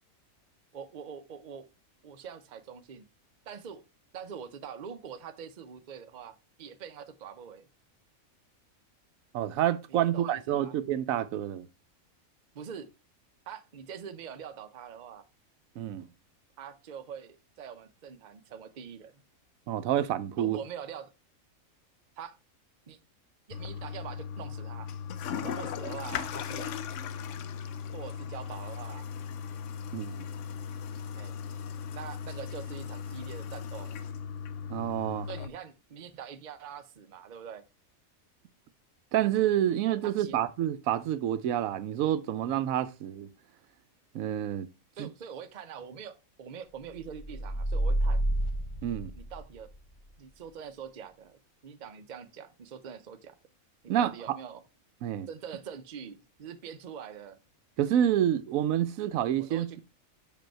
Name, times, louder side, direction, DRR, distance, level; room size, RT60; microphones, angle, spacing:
voice 1, 0.7-1.7 2.0-3.0 3.5-3.8 4.1-7.7 9.9-10.7 12.5-12.9 13.5-15.2 16.6-19.1 20.4-21.1 22.2-22.4 22.9-23.0 23.5-24.9 25.4-26.8 27.9-29.1 31.2-31.4 31.9-33.9 35.3-37.6 40.0-40.4 45.0-48.2 49.2-49.7 50.2-53.4 54.0-54.6 55.3-57.4 59.4-59.8, right 7 dB, 45° right, 0.7 m, -44 dB
voice 2, 9.3-11.7 15.8-16.1 19.7-20.6 29.9-30.3 34.7-35.3 39.1-43.3 44.1-44.7 45.0-45.1 48.8-49.1 53.9-54.4 55.0-55.3 57.8-59.7, right 11 dB, 80° right, 1.0 m, -28 dB
Toilet flush, 23.5-35.5, left 7 dB, 65° left, 0.9 m, -38 dB
sound 1, 47.1-49.8, right 1 dB, 25° left, 0.8 m, -29 dB
5.5 x 5.2 x 4.4 m
omnidirectional pair, 1.4 m